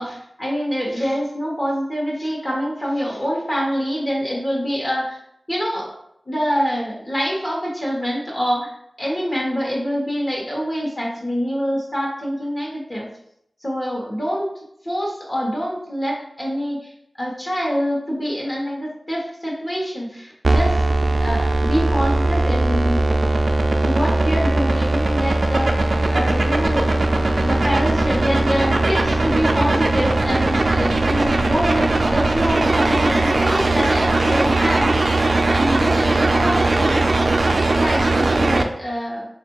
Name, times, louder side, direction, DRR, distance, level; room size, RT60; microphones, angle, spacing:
voice 1, 0.0-5.2 5.5-5.9 6.3-8.7 9.0-13.1 13.6-14.5 14.8-16.9 17.2-23.1 23.8-25.8 26.1-35.2 35.5-37.1 37.7-39.3, equal, 30° left, -3 dB, 1.1 m, -25 dB
sound 1, 20.4-38.6, right 2 dB, 60° right, 0.3 m, -19 dB
3.5 x 2.5 x 4.5 m, 0.74 s
wide cardioid pair, 75°, 0 cm